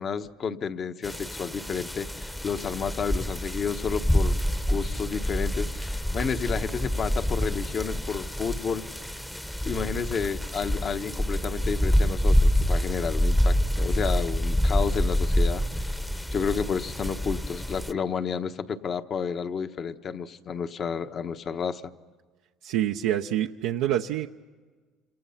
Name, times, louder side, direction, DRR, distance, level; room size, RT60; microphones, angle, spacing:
voice 1, 0.0-4.4 4.7-8.9 9.6-15.6 16.3-21.8, left 6 dB, 45° left, 8 dB, 1.2 m, -31 dB
sound 1, 1.0-17.9, equal, 5° left, 1.0 m, -27 dB
voice 2, 22.6-24.3, right 12 dB, 80° right, 2 dB, 0.8 m, -26 dB
28.5 x 27.0 x 5.8 m, 1.4 s
supercardioid pair, 95°, 0 cm